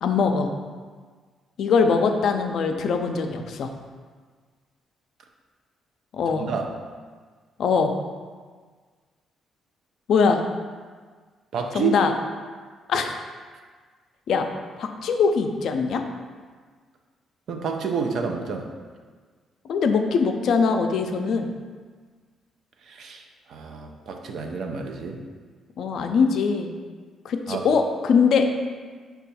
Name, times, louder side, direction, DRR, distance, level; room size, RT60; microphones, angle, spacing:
voice 1, 0.0-0.5 1.6-3.7 6.1-6.4 7.6-7.9 10.1-10.4 11.7-12.1 12.9-13.2 14.3-14.5 14.8-16.0 19.7-21.5 25.8-26.7 27.2-28.5, left 5 dB, 70° left, 5 dB, 0.4 m, -22 dB
voice 2, 6.4-6.7 11.5-12.0 17.5-18.7 22.8-23.2 23.5-25.2 27.5-27.7, right 6 dB, 65° right, 3 dB, 0.5 m, -29 dB
5.3 x 2.3 x 4.1 m, 1.5 s
cardioid pair, 90°, 0 cm